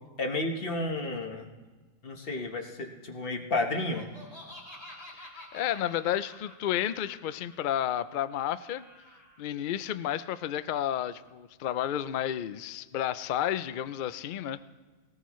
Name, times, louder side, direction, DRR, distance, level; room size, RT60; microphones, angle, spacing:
voice 1, 0.2-1.5 2.0-4.1, left 2 dB, 45° left, 3 dB, 1.4 m, -32 dB
Laughter, 3.8-9.4, left 1 dB, 60° left, 3.7 m, -50 dB
voice 2, 5.5-8.8 9.4-14.6, left 11 dB, 80° left, 13 dB, 0.4 m, -31 dB
20.0 x 18.5 x 3.1 m, 1.3 s
omnidirectional pair, 1.5 m